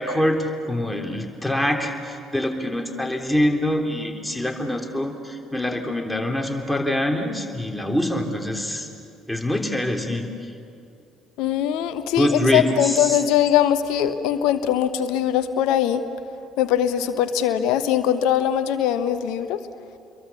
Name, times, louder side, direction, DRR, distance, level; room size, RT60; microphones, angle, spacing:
voice 1, 0.0-8.9 9.3-10.3 12.2-13.2, left 1 dB, 5° left, 2 dB, 3.6 m, -24 dB
voice 2, 11.4-16.0 16.6-19.6, left 10 dB, 65° left, 10 dB, 1.1 m, -21 dB
29.5 x 22.5 x 7.2 m, 2.5 s
figure-of-eight pair, 50°, 0 cm